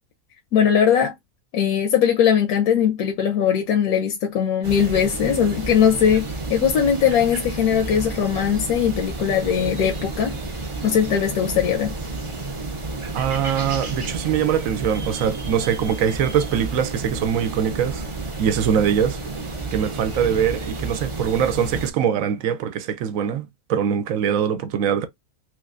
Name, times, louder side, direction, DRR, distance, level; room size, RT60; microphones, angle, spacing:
voice 1, 0.5-1.1 1.5-10.4 10.8-11.9, left 8 dB, 80° left, 1.2 m, -20 dB
sound 1, 4.6-21.9, right 2 dB, 30° right, 0.5 m, -31 dB
voice 2, 13.1-18.0 18.4-19.2 19.7-25.1, right 8 dB, 70° right, 0.9 m, -22 dB
3.3 x 3.2 x 2.5 m
omnidirectional pair, 1.5 m